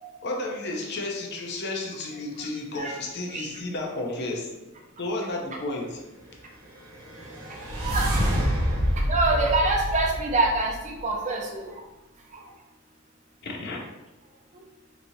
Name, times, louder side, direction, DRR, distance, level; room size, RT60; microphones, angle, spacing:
voice 1, 0.2-4.5 5.0-6.0 13.4-13.8, left 2 dB, 50° left, 0 dB, 0.7 m, -32 dB
sound 1, 6.8-11.0, equal, 80° right, 1.0 m, -27 dB
voice 2, 9.1-11.7, right 2 dB, 35° right, -1 dB, 0.6 m, -25 dB
4.1 x 3.0 x 2.7 m, 1.1 s
head